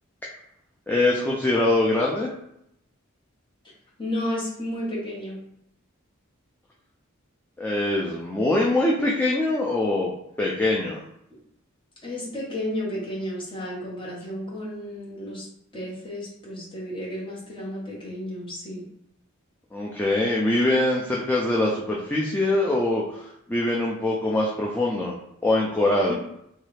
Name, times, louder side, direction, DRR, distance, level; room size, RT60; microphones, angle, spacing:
voice 1, 0.9-2.3 7.6-10.1 10.4-11.0 19.7-25.2 25.4-26.1, left 2 dB, 10° left, -4 dB, 0.3 m, -23 dB
voice 2, 4.0-5.4 12.0-15.5 15.7-18.8 26.0-26.1, left 1 dB, 25° left, -6 dB, 1.1 m, -32 dB
3.1 x 2.3 x 3.2 m, 0.77 s
head